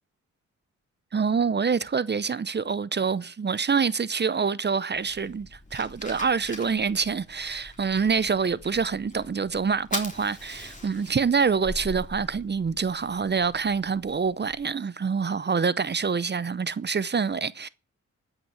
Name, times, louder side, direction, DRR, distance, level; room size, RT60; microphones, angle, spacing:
voice 1, 1.1-17.7, right 5 dB, 35° right, 0.7 m, -26 dB
Fire, 4.9-14.6, left 2 dB, 25° left, 3.5 m, -42 dB
14.0 x 5.9 x 7.9 m
cardioid pair, 70°, 31 cm